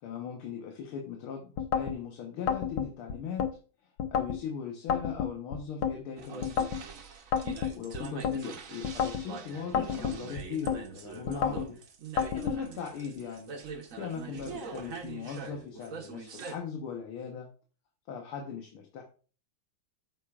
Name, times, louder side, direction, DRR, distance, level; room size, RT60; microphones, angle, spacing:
voice 1, 0.0-3.4 3.8-6.6 7.5-11.8 12.3-17.5 18.1-19.0, left 6 dB, 85° left, 2 dB, 2.1 m, -39 dB
sound 1, 1.6-2.0 2.5-3.5 4.0-4.4 4.9-6.0 6.4-6.8 7.3-8.4 8.8-9.3 9.7-10.8 11.3-11.7 12.2-12.6, left 7 dB, 65° left, 1.4 m, -30 dB
sound 2, 6.2-16.6, right 5 dB, 50° right, 1.2 m, -43 dB
9.0 x 7.5 x 2.4 m, 0.38 s
omnidirectional pair, 2.3 m